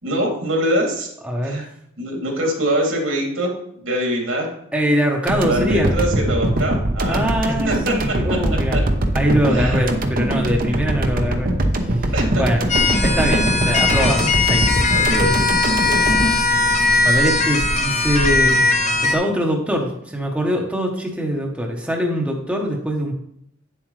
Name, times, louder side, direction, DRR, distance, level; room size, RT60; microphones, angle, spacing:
voice 1, 0.0-1.1 1.4-1.6 2.0-4.5 5.4-7.3 7.6-8.8 9.5-9.8 12.1-12.4 14.9-16.1, right 1 dB, 80° right, -1 dB, 2.7 m, -24 dB
voice 2, 1.2-1.7 4.7-6.0 7.1-8.8 9.1-12.6 13.0-14.8 15.2-15.4 17.0-18.6 19.1-23.1, equal, 5° right, -1 dB, 1.0 m, -23 dB
sound 1, 5.3-17.5, right 1 dB, 45° right, 0.8 m, -22 dB
sound 2, 12.7-19.1, left 3 dB, 35° left, 0.9 m, -19 dB
9.5 x 7.5 x 3.2 m, 0.71 s
head